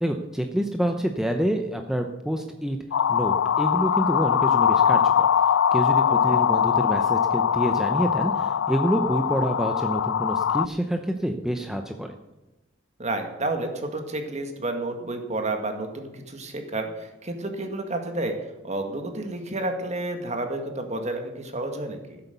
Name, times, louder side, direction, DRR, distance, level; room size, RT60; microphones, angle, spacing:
voice 1, 0.0-2.8 3.1-5.3 5.7-12.1, right 1 dB, 5° right, 4 dB, 0.7 m, -27 dB
sound 1, 2.9-10.7, left 8 dB, 90° left, 0.4 m, -22 dB
voice 2, 13.0-18.4 18.6-22.2, right 2 dB, 35° right, 5 dB, 1.8 m, -30 dB
15.0 x 8.3 x 6.9 m, 1.0 s
head